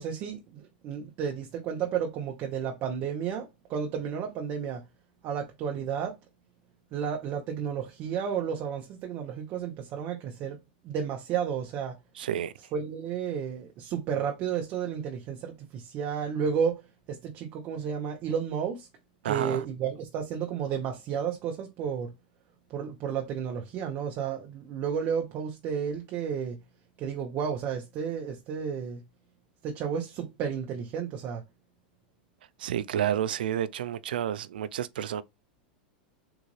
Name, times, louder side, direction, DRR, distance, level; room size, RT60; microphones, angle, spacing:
voice 1, 0.0-4.8 5.2-6.1 6.9-10.6 10.8-11.9 12.7-16.8 17.1-18.9 19.2-22.1 22.7-26.6 27.0-29.0 29.6-31.4, right 7 dB, 45° right, 0.7 m, -32 dB
voice 2, 12.2-12.5 19.2-19.6 32.6-35.2, right 10 dB, 85° right, 0.3 m, -30 dB
3.8 x 2.4 x 3.0 m
hypercardioid pair, 115°, 5 cm